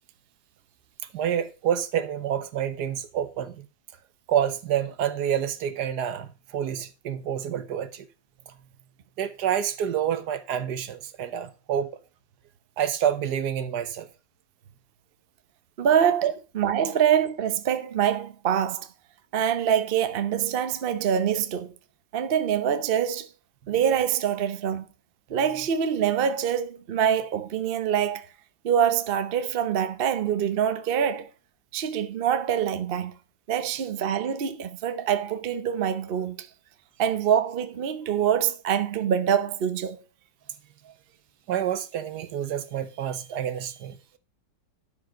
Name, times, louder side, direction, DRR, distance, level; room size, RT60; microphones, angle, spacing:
voice 1, 1.1-3.7 4.3-6.3 6.5-8.1 9.2-11.9 12.8-14.1 16.2-16.3 41.5-44.2, right 9 dB, 70° right, 1.4 m, -28 dB
voice 2, 15.8-16.3 16.5-18.9 19.3-21.7 22.1-23.3 23.7-24.9 25.3-28.3 28.6-31.3 31.7-33.1 33.5-36.5 37.0-40.0, right 8 dB, 50° right, 0.7 m, -25 dB
11.5 x 5.0 x 5.0 m
omnidirectional pair, 1.9 m